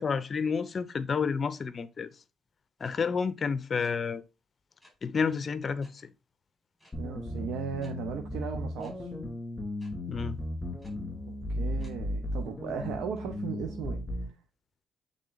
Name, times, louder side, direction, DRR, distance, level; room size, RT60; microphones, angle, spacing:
voice 1, 0.0-2.2 2.8-4.2 5.0-6.1 10.1-10.4, left 5 dB, 45° left, 0.6 m, -30 dB
sound 1, 2.8-2.9 3.8-3.9 4.8-4.9 5.8-5.9 6.8-6.9 7.8-7.9 8.8-8.9 9.8-9.9 10.8-10.9 11.8-11.9, equal, ahead, 4.7 m, -58 dB
sound 2, 6.9-14.3, left 1 dB, 20° left, 2.3 m, -36 dB
voice 2, 7.0-9.1 11.5-14.0, right 7 dB, 85° right, 0.8 m, -36 dB
8.7 x 3.7 x 3.9 m
cardioid pair, 90°, 0 cm